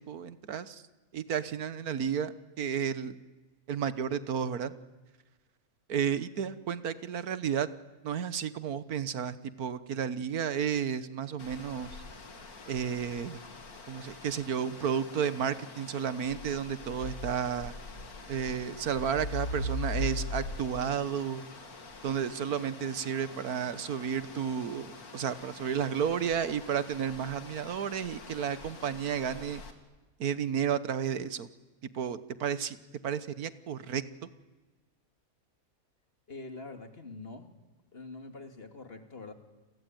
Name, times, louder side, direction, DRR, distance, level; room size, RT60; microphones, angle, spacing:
voice 1, 0.1-0.8 1.1-3.1 3.7-4.7 5.9-7.7 8.0-11.9 12.7-13.4 13.9-17.7 18.3-21.4 22.0-29.6 30.2-31.5 31.9-32.8 33.0-34.3, right 8 dB, 85° right, 14 dB, 1.7 m, -32 dB
sound 1, 11.4-29.7, left 2 dB, 85° left, 2.9 m, -42 dB
voice 2, 36.3-37.5 37.9-39.3, left 3 dB, 40° left, 7 dB, 2.6 m, -44 dB
30.0 x 22.0 x 9.2 m, 1.3 s
omnidirectional pair, 1.5 m